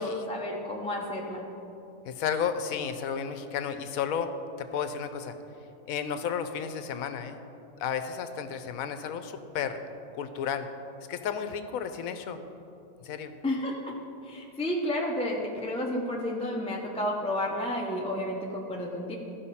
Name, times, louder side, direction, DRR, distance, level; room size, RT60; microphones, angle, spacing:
voice 1, 0.0-1.4 13.4-13.7 14.3-19.2, left 1 dB, 5° left, -2 dB, 0.6 m, -31 dB
voice 2, 2.0-4.3 4.6-5.4 5.9-7.4 7.8-9.8 10.1-10.7 11.1-12.4 13.0-13.3, left 7 dB, 80° left, 9 dB, 1.1 m, -32 dB
14.5 x 5.7 x 4.2 m, 2.8 s
omnidirectional pair, 1.5 m